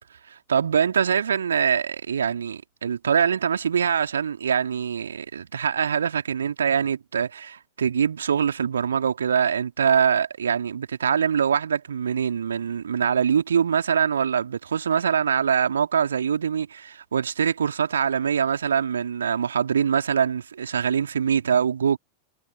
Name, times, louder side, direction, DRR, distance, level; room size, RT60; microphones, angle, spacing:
voice 1, 0.3-22.0, right 7 dB, 70° right, 2.4 m, -23 dB
figure-of-eight pair, 90°, 0 cm